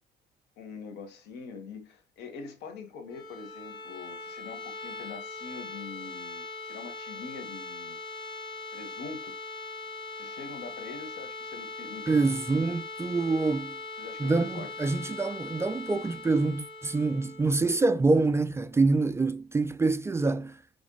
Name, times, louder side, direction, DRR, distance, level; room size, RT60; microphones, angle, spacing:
voice 1, 0.6-8.0 8.7-9.4 10.2-12.5 14.0-14.7, left 4 dB, 85° left, 1.5 m, -44 dB
sound 1, 3.0-18.8, left 3 dB, 25° left, 1.6 m, -41 dB
voice 2, 12.1-13.8 14.2-20.6, right 3 dB, 15° right, 0.3 m, -26 dB
5.2 x 3.4 x 2.3 m
cardioid pair, 110°, 17 cm